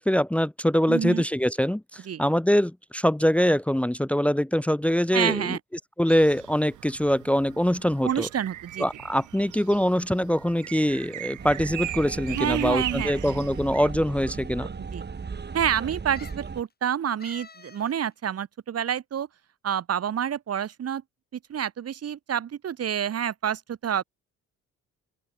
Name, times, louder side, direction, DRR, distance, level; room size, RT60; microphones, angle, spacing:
voice 1, 0.0-5.6 6.0-8.3 8.8-14.7, equal, 5° left, 1.0 m, -23 dB
voice 2, 0.9-1.2 2.1-2.2 5.1-5.6 8.0-8.9 12.3-13.2 14.9-15.0 15.5-19.3 19.6-21.0 21.5-24.0, right 9 dB, 55° right, 1.8 m, -28 dB
sound 1, 6.1-13.9, right 13 dB, 80° right, 2.6 m, -39 dB
sound 2, 11.4-16.6, right 5 dB, 35° right, 4.4 m, -36 dB
sound 3, 12.7-13.3 14.1-14.2 14.5-14.6 16.1-16.5 17.2-18.0 18.3-18.4, left 4 dB, 30° left, 7.8 m, -48 dB
open air
cardioid pair, 90°, 30 cm